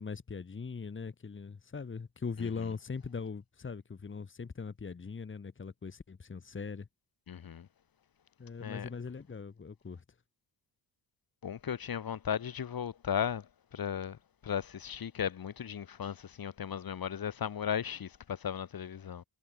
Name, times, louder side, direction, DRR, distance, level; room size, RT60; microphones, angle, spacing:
voice 1, 0.0-6.9 8.4-10.0, left 5 dB, 25° left, 3.0 m, -40 dB
voice 2, 7.3-7.7 8.6-8.9 11.4-14.2 14.4-19.2, left 8 dB, 50° left, 3.8 m, -36 dB
wide cardioid pair, 175°, 44 cm